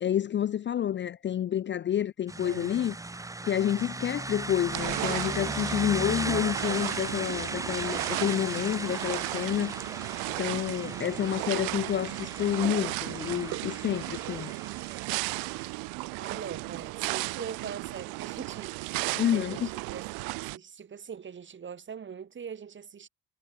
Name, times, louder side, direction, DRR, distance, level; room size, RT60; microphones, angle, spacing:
voice 1, 0.0-3.0 3.5-9.7 10.4-14.5 19.1-19.7, left 10 dB, 35° left, 0.4 m, -29 dB
sound 1, 2.3-15.7, right 2 dB, 10° right, 0.6 m, -37 dB
voice 2, 2.4-2.8 10.6-11.2 16.2-20.1 20.5-23.1, right 7 dB, 35° right, 0.9 m, -42 dB
sound 2, 4.7-20.6, right 31 dB, 85° right, 0.6 m, -35 dB
supercardioid pair, 65°, 36 cm